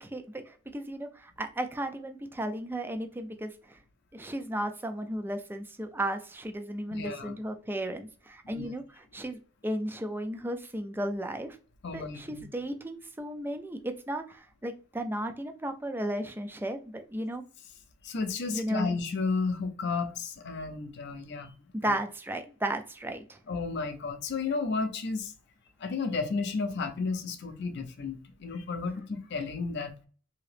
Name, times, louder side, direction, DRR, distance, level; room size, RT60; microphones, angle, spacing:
voice 1, 0.0-3.8 4.1-11.6 11.9-17.4 18.5-19.0 21.7-23.4, right 1 dB, 10° right, 0.4 m, -35 dB
voice 2, 6.9-7.3 8.4-8.7 11.8-12.4 18.0-21.5 21.8-21.9 23.5-25.3 25.8-29.9, left 4 dB, 55° left, 0.5 m, -33 dB
2.9 x 2.8 x 3.2 m
head